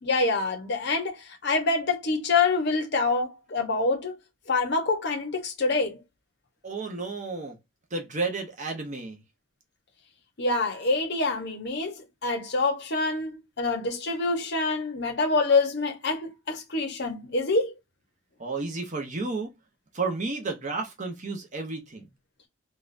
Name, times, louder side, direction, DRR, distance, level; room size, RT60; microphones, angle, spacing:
voice 1, 0.0-4.2 4.5-6.0 10.4-12.0 12.2-17.7, left 3 dB, 55° left, 0.9 m, -26 dB
voice 2, 6.6-7.6 7.9-9.2 18.4-19.5 19.9-22.1, right 3 dB, 35° right, 0.9 m, -32 dB
4.0 x 2.4 x 2.6 m
head